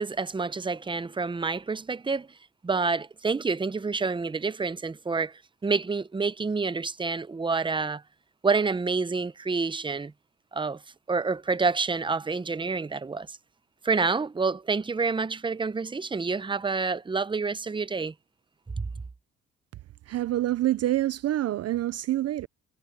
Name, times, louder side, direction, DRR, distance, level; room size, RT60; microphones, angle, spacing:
voice 1, 0.0-2.3 2.6-8.0 8.4-10.1 10.5-10.8 11.1-13.4 13.8-18.1 18.8-18.9, right 4 dB, 15° right, 0.7 m, -28 dB
voice 2, 20.1-22.5, right 14 dB, 55° right, 0.5 m, -26 dB
cardioid pair, 90°, 30 cm